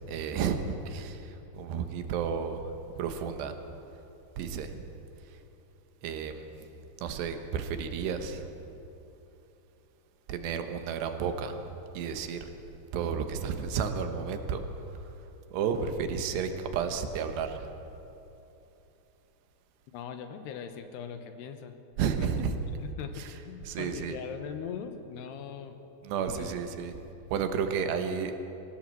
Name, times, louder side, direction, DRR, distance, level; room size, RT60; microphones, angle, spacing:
voice 1, 0.1-2.6 3.0-3.5 4.4-4.9 6.0-6.6 7.0-8.5 10.3-11.6 12.0-12.5 12.9-14.6 15.5-17.7 22.0-22.6 23.2-23.3 23.7-24.2 26.0-26.9 27.3-28.5, right 6 dB, 85° right, 7 dB, 3.4 m, -32 dB
voice 2, 19.9-21.8 22.2-22.3 22.8-25.8 26.3-26.6, left 7 dB, 80° left, 8 dB, 3.1 m, -40 dB
23.5 x 16.0 x 7.7 m, 3.0 s
omnidirectional pair, 4.8 m